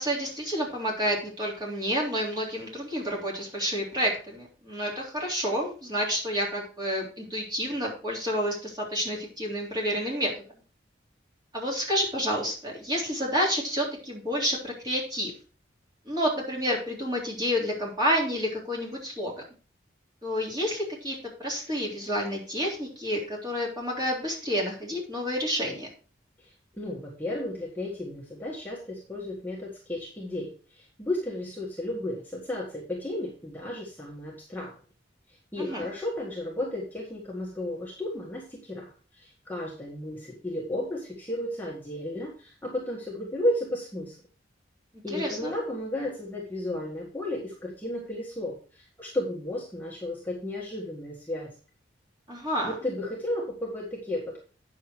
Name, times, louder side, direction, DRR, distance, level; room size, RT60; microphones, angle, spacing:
voice 1, 0.0-10.3 11.5-15.3 16.0-19.3 20.2-25.9 35.6-35.9 45.1-45.5 52.3-52.8, equal, 20° right, -3 dB, 3.4 m, -29 dB
voice 2, 26.4-34.7 35.5-44.2 45.0-51.5 52.6-54.4, left 1 dB, 10° left, -4 dB, 1.7 m, -33 dB
9.2 x 6.5 x 4.5 m, 0.37 s
head